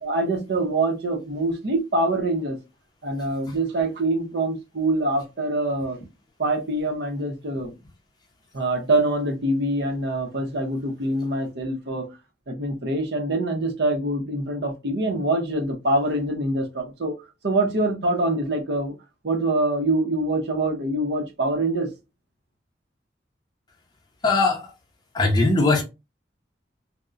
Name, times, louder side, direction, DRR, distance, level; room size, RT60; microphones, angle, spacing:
voice 1, 0.0-2.6 3.0-6.0 6.4-7.7 8.5-12.1 12.5-17.2 17.4-18.9 19.2-21.9, right 2 dB, 65° right, 0.7 m, -24 dB
voice 2, 24.2-24.7 25.1-25.8, left 3 dB, 25° left, 0.5 m, -20 dB
2.8 x 2.1 x 2.4 m
head